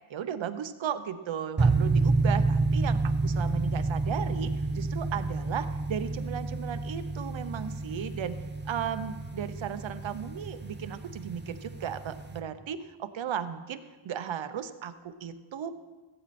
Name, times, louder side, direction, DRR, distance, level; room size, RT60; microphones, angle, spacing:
voice 1, 0.1-8.4 8.6-13.8 14.0-15.7, right 8 dB, 65° right, 11 dB, 0.8 m, -35 dB
sound 1, 1.6-12.4, right 3 dB, 20° right, 0.7 m, -29 dB
15.5 x 8.7 x 4.2 m, 1.2 s
wide cardioid pair, 105°, 49 cm